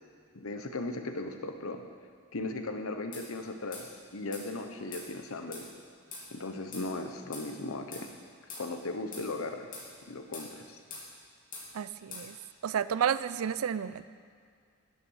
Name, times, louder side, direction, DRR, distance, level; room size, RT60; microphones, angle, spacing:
voice 1, 0.3-1.8 2.3-5.7 6.3-8.1 8.6-9.7 10.1-10.8, left 2 dB, 90° left, 6 dB, 1.0 m, -37 dB
sound 1, 3.1-3.3 3.7-3.9 4.3-4.5 4.9-5.1 5.5-5.7 6.1-6.3 6.7-6.9 7.3-7.5 7.9-8.1 8.5-8.7 9.1-9.3 9.7-9.9 10.3-10.5 10.9-11.1 11.5-11.7 12.1-12.3, left 3 dB, 40° left, 2.7 m, -43 dB
voice 2, 11.7-12.3 12.6-14.0, right 8 dB, 90° right, 15 dB, 0.4 m, -31 dB
10.0 x 8.7 x 6.4 m, 2.1 s
head